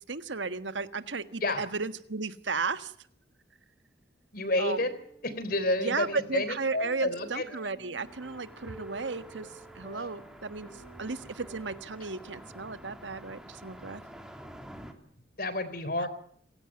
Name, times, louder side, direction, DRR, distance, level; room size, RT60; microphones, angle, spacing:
voice 1, 0.1-2.9 4.6-4.8 5.8-9.5 9.7-10.7 11.0-14.0, right 4 dB, 80° right, 12 dB, 1.5 m, -34 dB
voice 2, 4.3-4.9 5.2-7.4 15.4-16.1, left 2 dB, 50° left, 13 dB, 3.6 m, -30 dB
sound 1, 4.7-12.6, right 3 dB, 20° left, 5.8 m, -52 dB
sound 2, 8.0-14.9, equal, 5° right, 2.7 m, -49 dB
27.0 x 16.0 x 8.7 m, 0.64 s
head